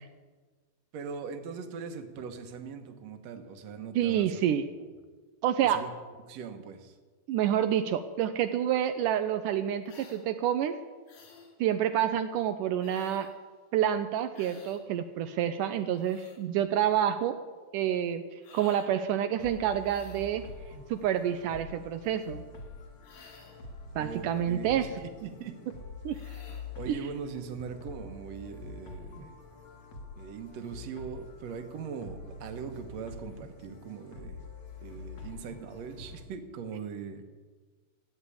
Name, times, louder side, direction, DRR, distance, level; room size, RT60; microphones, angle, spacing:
voice 1, 0.9-4.4 5.7-5.9 6.3-7.0 24.0-25.6 26.2-26.5 26.8-29.3 30.2-34.4 34.8-37.2, right 6 dB, 60° right, 7 dB, 1.9 m, -41 dB
voice 2, 4.0-4.7 5.4-5.8 7.3-10.8 11.6-13.3 13.7-17.4 17.7-18.2 18.5-20.4 20.9-22.4 24.0-24.9 26.1-26.2 26.9-27.0, right 10 dB, 80° right, 10 dB, 2.0 m, -28 dB
sound 1, 9.9-10.2 11.1-11.5 12.8-13.4 14.3-14.8 15.7-16.4 18.4-18.9 19.8-20.4 23.0-23.7 26.1-26.7, left 4 dB, 75° left, 4.2 m, -54 dB
sound 2, 19.4-36.2, left 2 dB, 50° left, 2.9 m, -46 dB
14.5 x 9.7 x 8.5 m, 1.4 s
omnidirectional pair, 4.2 m